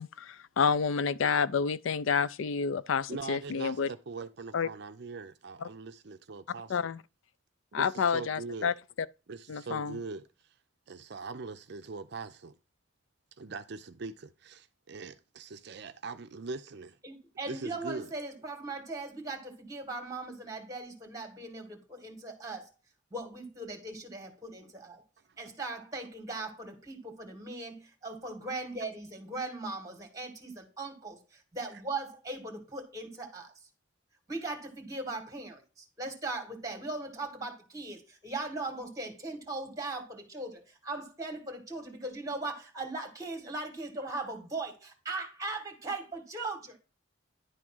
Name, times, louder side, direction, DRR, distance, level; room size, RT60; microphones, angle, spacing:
voice 1, 0.0-3.9 4.5-4.7 5.6-5.7 6.7-7.0 7.7-8.7 9.5-10.0, left 6 dB, 75° left, 0.4 m, -29 dB
voice 2, 3.1-6.9 7.7-8.7 9.3-10.5 10.9-12.5 13.4-17.0 17.5-18.1, right 4 dB, 55° right, 0.5 m, -42 dB
voice 3, 17.0-22.7 23.1-25.0 25.4-33.5 34.3-46.8, right 2 dB, 15° right, 2.2 m, -39 dB
11.0 x 3.7 x 6.1 m
head